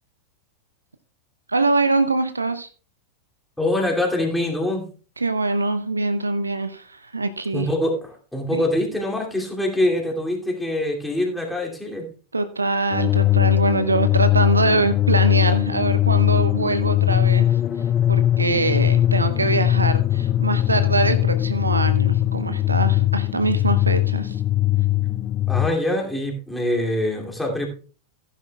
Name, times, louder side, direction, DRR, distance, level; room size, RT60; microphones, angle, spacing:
voice 1, 1.5-2.7 5.2-7.7 8.5-8.6 12.3-17.6 18.1-24.4, right 3 dB, 80° right, 11 dB, 0.7 m, -23 dB
voice 2, 3.6-4.9 7.5-12.1 25.5-27.7, left 1 dB, 5° left, -1 dB, 2.7 m, -24 dB
sound 1, 12.9-25.7, left 13 dB, 30° left, 0.4 m, -20 dB
15.5 x 10.0 x 2.3 m, 0.38 s
figure-of-eight pair, 90°, 0 cm